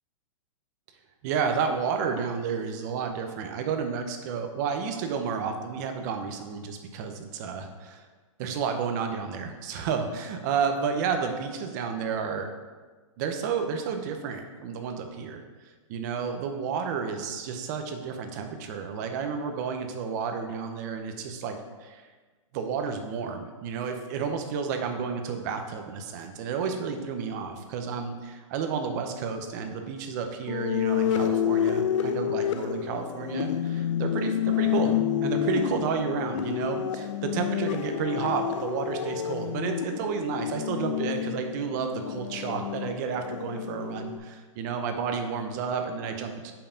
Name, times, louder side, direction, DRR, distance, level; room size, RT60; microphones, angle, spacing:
voice 1, 1.2-8.0 8.4-12.5 13.2-15.4 15.9-22.1 22.5-46.5, right 6 dB, 30° right, 5 dB, 0.6 m, -31 dB
sound 1, 30.5-44.2, left 10 dB, 60° left, 0.4 m, -29 dB
5.6 x 4.6 x 5.1 m, 1.4 s
hypercardioid pair, 160°, 17 cm